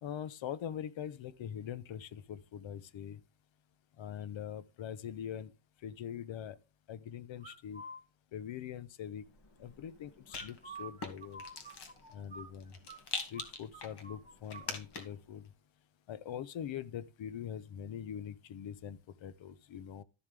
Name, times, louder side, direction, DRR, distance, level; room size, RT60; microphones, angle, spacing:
voice 1, 0.0-3.2 4.0-5.5 5.8-6.6 6.9-7.8 8.3-9.3 9.6-11.4 12.1-12.7 13.3-15.4 16.1-20.0, left 9 dB, 85° left, 0.9 m, -43 dB
sound 1, 7.4-8.0 10.3-13.0 13.3-13.5 13.7-14.7, right 2 dB, 15° right, 1.6 m, -48 dB
Rattle, 9.2-15.3, left 4 dB, 60° left, 2.3 m, -45 dB
13.0 x 7.1 x 3.4 m
wide cardioid pair, 170°, 45 cm